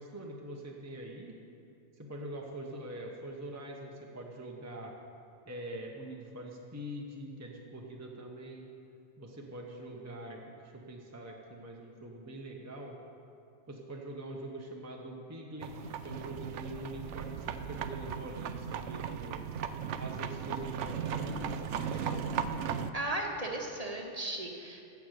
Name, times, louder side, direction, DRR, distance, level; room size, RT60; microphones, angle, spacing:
voice 1, 0.0-1.3 1.9-5.0 5.5-8.7 9.2-13.0 13.7-15.7 16.0-19.4 19.9-22.2, right 1 dB, 15° right, -1 dB, 0.9 m, -44 dB
sound 1, 15.6-22.9, right 7 dB, 85° right, 0.9 m, -37 dB
voice 2, 22.9-24.8, right 1 dB, 35° right, 1 dB, 1.3 m, -36 dB
15.5 x 5.9 x 7.9 m, 2.6 s
omnidirectional pair, 1.2 m